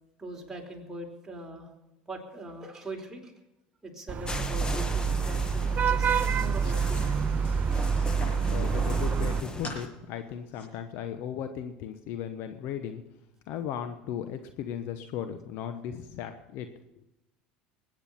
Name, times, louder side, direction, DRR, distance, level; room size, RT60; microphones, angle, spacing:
voice 1, 0.2-1.7 2.1-3.3 3.8-7.2, right 2 dB, 10° right, -1 dB, 4.2 m, -41 dB
Vehicle horn car horn honking / Traffic noise roadway noise, 4.1-9.4, right 6 dB, 35° right, 0.6 m, -27 dB
sound 1, 4.3-9.9, left 2 dB, 20° left, 1.5 m, -37 dB
sound 2, 5.8-8.5 9.0-9.8 10.2-10.7, left 2 dB, 35° left, 7.1 m, -45 dB
voice 2, 8.5-13.0 13.5-16.7, left 9 dB, 65° left, 8 dB, 1.0 m, -36 dB
21.0 x 9.6 x 5.7 m, 0.92 s
hypercardioid pair, 80°, 4 cm